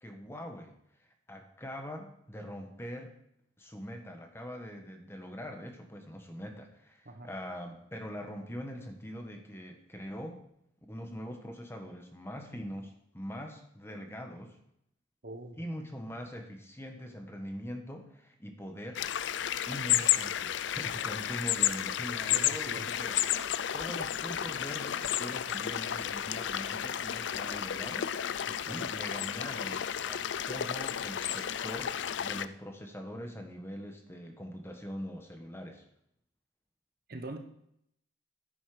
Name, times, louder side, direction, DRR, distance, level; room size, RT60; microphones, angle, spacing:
voice 1, 0.0-0.8 1.3-3.2 3.6-10.4 10.9-14.6 15.6-19.0 19.7-23.3 23.7-28.1 28.7-35.8, equal, 10° left, 4 dB, 1.2 m, -42 dB
voice 2, 15.2-15.6 22.3-22.9 28.6-28.9 37.1-37.4, right 2 dB, 50° right, 7 dB, 1.0 m, -43 dB
sound 1, 19.0-32.5, left 10 dB, 65° left, 0.4 m, -32 dB
10.5 x 9.5 x 4.9 m, 0.75 s
head